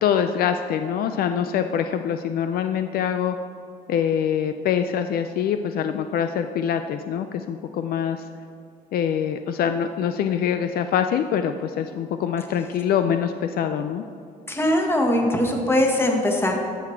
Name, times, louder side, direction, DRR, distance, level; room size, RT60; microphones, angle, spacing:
voice 1, 0.0-3.4 3.9-8.2 8.9-14.0, left 8 dB, 65° left, 8 dB, 0.4 m, -24 dB
voice 2, 14.5-16.6, left 1 dB, 15° left, 2 dB, 1.4 m, -21 dB
13.5 x 5.9 x 4.5 m, 2.3 s
cardioid pair, 110°, 17 cm